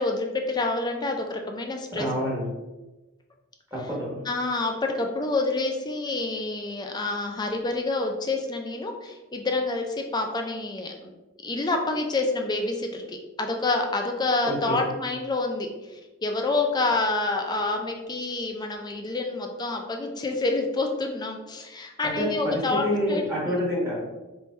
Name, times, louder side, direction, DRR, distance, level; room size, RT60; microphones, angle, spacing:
voice 1, 0.0-2.1 4.3-11.1 11.4-23.6, left 3 dB, 20° left, 3 dB, 0.4 m, -28 dB
voice 2, 1.9-2.4 3.7-4.2 14.4-14.8 22.0-24.1, equal, 15° right, -5 dB, 1.1 m, -28 dB
3.3 x 2.6 x 4.3 m, 1.1 s
head